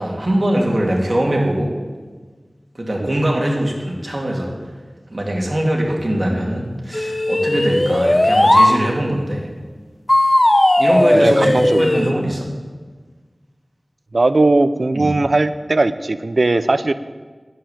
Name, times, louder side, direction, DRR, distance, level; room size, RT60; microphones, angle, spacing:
voice 1, 0.0-1.7 2.8-4.5 5.1-9.5 10.8-12.5 14.9-15.1, right 1 dB, 45° right, -1 dB, 2.7 m, -21 dB
sound 1, 6.9-8.7 10.1-12.1, left 1 dB, 35° left, 0.7 m, -15 dB
voice 2, 10.9-11.9 14.1-16.9, right 2 dB, 70° right, 12 dB, 0.5 m, -18 dB
10.0 x 7.7 x 8.6 m, 1.4 s
wide cardioid pair, 50°, 0 cm